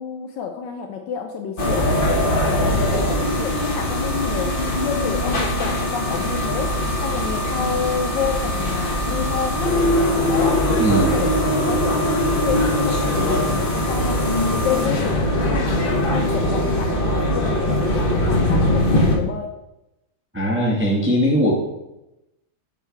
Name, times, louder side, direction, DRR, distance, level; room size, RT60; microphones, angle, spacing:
voice 1, 0.0-9.8 10.3-10.6 10.9-11.3 11.7-12.1 12.4-14.2 14.5-19.5, left 7 dB, 75° left, 4 dB, 1.1 m, -29 dB
sound 1, 1.6-19.2, left 1 dB, 45° left, 0.7 m, -21 dB
voice 2, 10.8-11.2 20.3-21.5, equal, 10° right, -3 dB, 0.6 m, -19 dB
7.5 x 3.2 x 4.7 m, 0.94 s
omnidirectional pair, 2.3 m